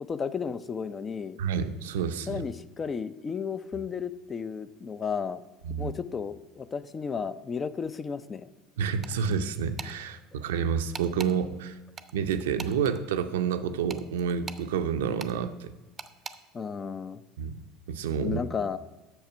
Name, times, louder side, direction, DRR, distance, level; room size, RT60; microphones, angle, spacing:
voice 1, 0.1-1.4 2.3-5.4 5.8-8.5 16.5-17.2 18.2-18.8, left 6 dB, 30° left, 14 dB, 0.5 m, -33 dB
voice 2, 1.4-2.4 5.6-5.9 8.8-11.8 12.1-15.7 17.4-17.5 17.9-18.4, right 7 dB, 75° right, 9 dB, 0.5 m, -29 dB
sound 1, 9.0-9.4 9.8-9.9 10.9-11.3 12.0-13.0 13.9-14.7 15.2-15.3 16.0-16.4, right 5 dB, 30° right, 0.6 m, -41 dB
7.9 x 6.6 x 6.0 m, 1.1 s
figure-of-eight pair, 70°, 0 cm